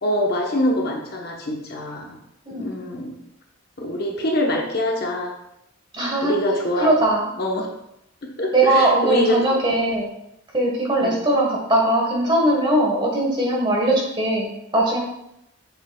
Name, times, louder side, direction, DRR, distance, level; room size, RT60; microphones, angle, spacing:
voice 1, 0.0-2.2 2.6-3.2 3.8-5.3 6.2-6.9 7.4-7.7 8.4-9.4 11.0-11.2, left 1 dB, 50° left, 0 dB, 1.0 m, -24 dB
voice 2, 2.5-2.8 5.9-6.3 6.8-7.3 8.5-10.1 10.5-15.0, right 1 dB, 20° right, -2 dB, 1.4 m, -20 dB
7.9 x 6.6 x 2.3 m, 0.82 s
head